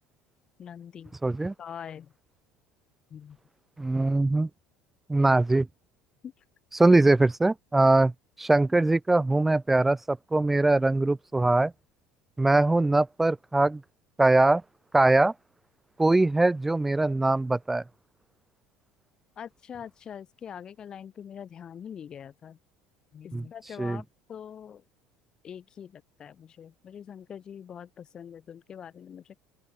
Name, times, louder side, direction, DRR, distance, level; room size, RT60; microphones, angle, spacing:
voice 1, 0.6-1.2 1.6-2.1 3.1-3.4 6.2-6.3 19.4-22.6 23.1-24.8 25.4-29.4, left 8 dB, 30° left, 6.4 m, -43 dB
voice 2, 1.2-1.5 3.8-4.5 5.1-5.7 6.7-8.1 8.4-11.7 12.4-13.8 14.2-14.6 14.9-15.3 16.0-17.8 23.3-23.4 23.8-24.0, right 2 dB, 10° right, 0.4 m, -22 dB
open air
cardioid pair, 140°, 3 cm